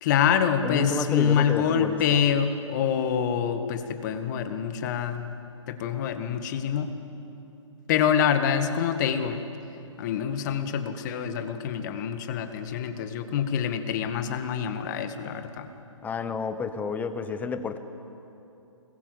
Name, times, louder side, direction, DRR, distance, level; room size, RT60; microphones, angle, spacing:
voice 1, 0.0-5.3 5.7-6.9 7.9-9.4 10.0-15.7, left 8 dB, 35° left, 8 dB, 1.8 m, -26 dB
voice 2, 0.6-2.2 16.0-17.8, left 5 dB, 10° left, 10 dB, 1.1 m, -30 dB
27.0 x 20.5 x 8.2 m, 2.9 s
figure-of-eight pair, 135°, 16 cm